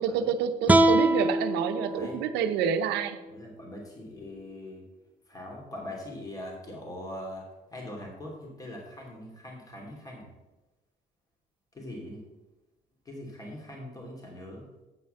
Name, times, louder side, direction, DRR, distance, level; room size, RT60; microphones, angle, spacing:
voice 1, 0.0-3.2, right 7 dB, 90° right, 9 dB, 0.7 m, -28 dB
sound 1, 0.7-3.8, right 1 dB, 10° right, 0.5 m, -26 dB
voice 2, 1.9-2.2 3.3-4.9 5.3-10.3 11.7-12.3 13.0-14.7, left 1 dB, 20° left, -1 dB, 2.6 m, -42 dB
8.5 x 5.7 x 6.5 m, 1.1 s
cardioid pair, 110°, 17 cm